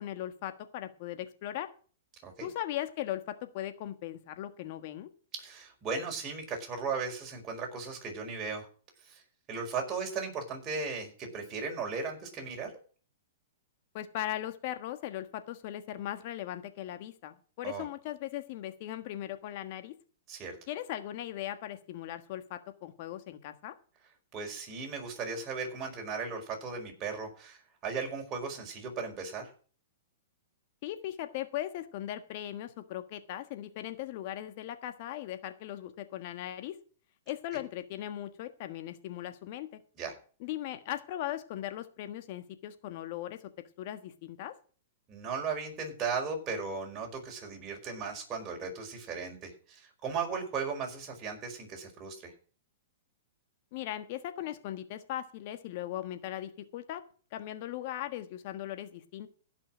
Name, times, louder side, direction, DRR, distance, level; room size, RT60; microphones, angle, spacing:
voice 1, 0.0-1.7 2.4-5.1 13.9-19.9 20.7-23.7 30.8-36.8 37.3-39.8 40.4-43.4 43.8-44.5 53.7-57.0 57.3-59.3, left 12 dB, 50° left, 9 dB, 1.4 m, -38 dB
voice 2, 5.3-8.7 9.0-9.2 9.5-12.7 17.6-17.9 20.3-20.6 24.3-29.5 40.0-40.1 45.1-52.3, right 5 dB, 30° right, 1 dB, 5.0 m, -36 dB
16.5 x 6.1 x 6.2 m, 0.41 s
hypercardioid pair, 125°, 0 cm